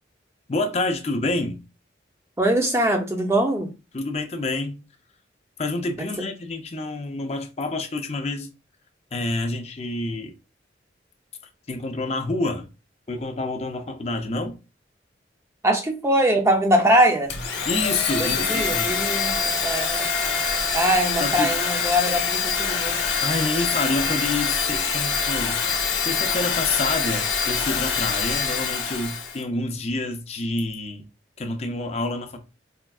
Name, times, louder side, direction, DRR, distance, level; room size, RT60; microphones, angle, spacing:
voice 1, 0.5-1.6 3.9-4.8 5.6-8.5 9.1-10.3 11.7-12.7 13.1-14.6 17.6-19.0 21.2-21.5 23.2-25.6 26.0-31.1 31.4-32.4, left 2 dB, 35° left, 0.5 m, -28 dB
voice 2, 2.4-3.7 6.0-6.3 15.6-17.3 18.2-20.1 20.7-23.0, right 1 dB, 15° right, 0.5 m, -22 dB
Domestic sounds home sounds, 17.3-29.4, left 5 dB, 75° left, 0.8 m, -25 dB
4.4 x 2.3 x 2.3 m
head